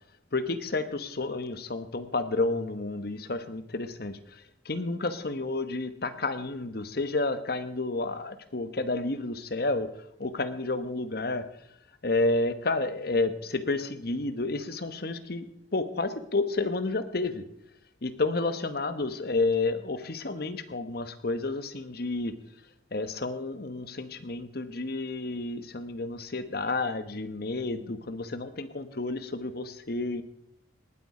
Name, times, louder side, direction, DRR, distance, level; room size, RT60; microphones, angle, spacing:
voice 1, 0.3-9.9 10.2-11.5 12.0-17.4 18.0-22.3 22.9-30.2, left 3 dB, 60° left, 11 dB, 1.1 m, -30 dB
19.0 x 8.5 x 4.9 m, 0.75 s
head